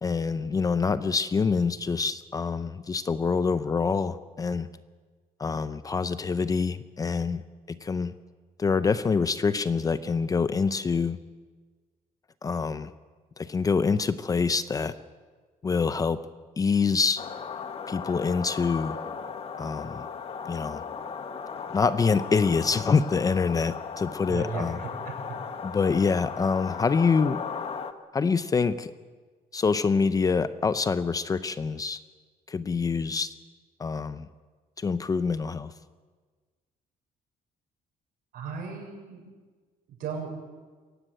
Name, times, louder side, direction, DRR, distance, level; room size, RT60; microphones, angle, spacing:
voice 1, 0.0-4.7 5.4-7.4 7.7-8.1 8.6-11.2 12.4-12.9 13.4-14.9 15.6-16.2 16.6-17.2 17.9-19.0 19.6-20.1 20.5-20.8 21.7-24.8 25.6-27.4 28.1-28.9 29.5-32.0 32.5-33.3 33.8-34.3 34.8-35.7, left 5 dB, 25° left, 13 dB, 0.6 m, -26 dB
sound 1, 17.2-27.9, left 6 dB, 40° left, 1.4 m, -37 dB
voice 2, 24.3-25.1 38.3-39.2 39.9-40.4, right 5 dB, 70° right, 2 dB, 6.6 m, -36 dB
23.5 x 16.5 x 9.2 m, 1.4 s
cardioid pair, 160°, 16 cm